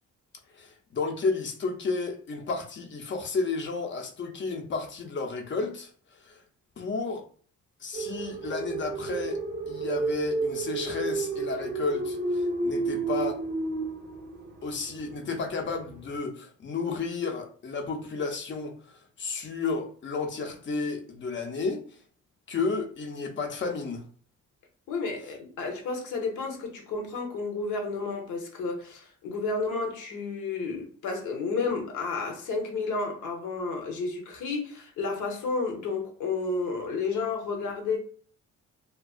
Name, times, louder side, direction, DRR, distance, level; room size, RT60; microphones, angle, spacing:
voice 1, 0.6-5.9 6.3-6.4 6.8-7.2 7.8-9.4 9.7-13.4 14.6-18.7 19.2-21.8 22.5-24.0, left 4 dB, 40° left, 0.6 m, -32 dB
sound 1, 7.9-16.2, right 3 dB, 35° right, 0.5 m, -31 dB
voice 2, 24.9-38.0, left 4 dB, 80° left, 0.7 m, -31 dB
2.3 x 2.2 x 2.3 m
cardioid pair, 90°, 30 cm